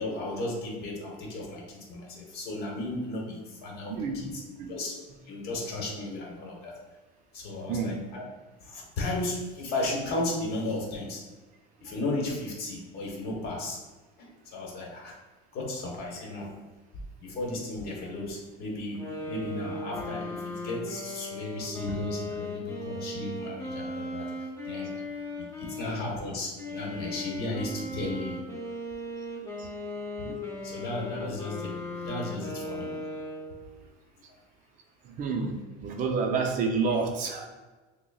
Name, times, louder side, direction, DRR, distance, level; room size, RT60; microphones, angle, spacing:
voice 1, 0.0-4.4 4.7-5.0 5.3-6.7 7.3-8.2 8.6-11.2 11.8-13.8 14.2-15.1 15.5-16.5 17.2-19.0 19.3-24.3 24.7-24.9 25.3-28.4 30.2-32.9, left 2 dB, 50° left, -1 dB, 1.1 m, -34 dB
voice 2, 3.9-4.8 7.7-8.0 29.6-29.7 30.2-30.3 35.0-35.5 35.8-37.4, right 4 dB, 40° right, 2 dB, 0.5 m, -29 dB
sound 1, 18.9-26.0 26.6-33.7, left 1 dB, 15° left, 1.2 m, -37 dB
6.1 x 2.1 x 2.3 m, 1.2 s
supercardioid pair, 140°, 21 cm